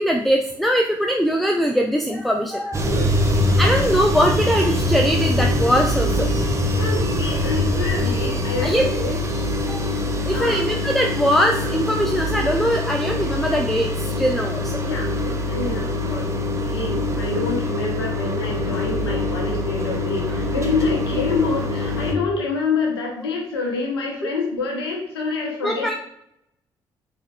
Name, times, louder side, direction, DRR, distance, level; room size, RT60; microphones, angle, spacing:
voice 1, 0.0-2.9 3.6-6.3 8.6-8.9 9.7-9.9 10.2-14.8 24.2-24.3 25.6-25.9, equal, ahead, 2 dB, 0.5 m, -21 dB
sound 1, 2.7-22.1, left 1 dB, 25° right, 0.8 m, -23 dB
voice 2, 6.8-9.2 10.3-10.6 14.8-16.3 16.6-25.9, left 4 dB, 85° left, -1 dB, 0.6 m, -27 dB
5.6 x 4.2 x 2.2 m, 0.76 s
figure-of-eight pair, 40°, 13 cm